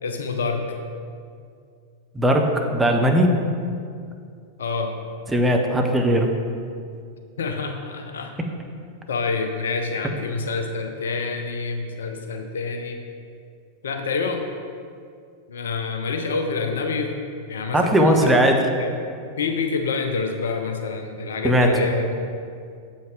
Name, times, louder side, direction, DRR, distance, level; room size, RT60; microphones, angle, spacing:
voice 1, 0.0-0.8 4.6-4.9 7.4-8.3 9.1-13.0 13.8-14.4 15.5-17.1 17.5-18.3 18.8-18.9 19.4-22.3, left 4 dB, 65° left, 5 dB, 0.7 m, -27 dB
voice 2, 2.1-3.4 5.3-6.3 17.7-18.6 21.4-21.7, right 1 dB, 10° right, 2 dB, 0.8 m, -18 dB
7.5 x 5.5 x 4.7 m, 2.3 s
figure-of-eight pair, 90°, 0 cm